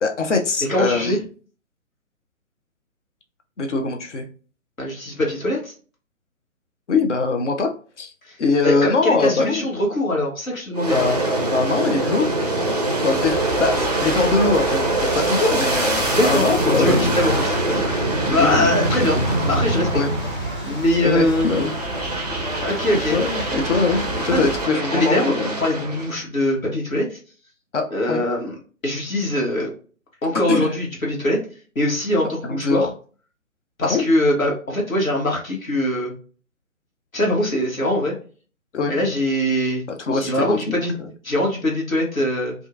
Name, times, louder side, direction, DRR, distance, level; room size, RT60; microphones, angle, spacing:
voice 1, 0.0-1.2 3.6-4.3 6.9-8.1 8.4-9.7 10.9-12.3 13.0-17.4 18.2-18.8 19.9-20.1 21.0-21.7 23.1-25.6 27.7-28.2 30.5-30.7 32.4-32.9 33.8-34.0 38.7-38.9 39.9-41.1, left 4 dB, 60° left, 5 dB, 0.7 m, -22 dB
voice 2, 0.7-1.2 4.8-5.7 8.3-8.4 8.6-11.0 16.1-19.2 19.5-20.0 20.7-21.5 22.6-23.2 24.2-24.5 24.9-25.3 25.6-27.2 27.9-28.5 28.8-29.7 30.2-31.4 31.7-32.9 33.8-36.1 37.1-38.1 38.9-39.8 40.1-40.9 41.2-42.5, left 1 dB, 80° left, -1 dB, 1.3 m, -22 dB
Aircraft, 10.7-20.8 21.3-26.2, right 2 dB, 30° right, 0.4 m, -24 dB
sound 1, 13.2-24.7, right 1 dB, 10° left, 0.9 m, -33 dB
2.7 x 2.4 x 2.4 m, 0.39 s
figure-of-eight pair, 135°, 41 cm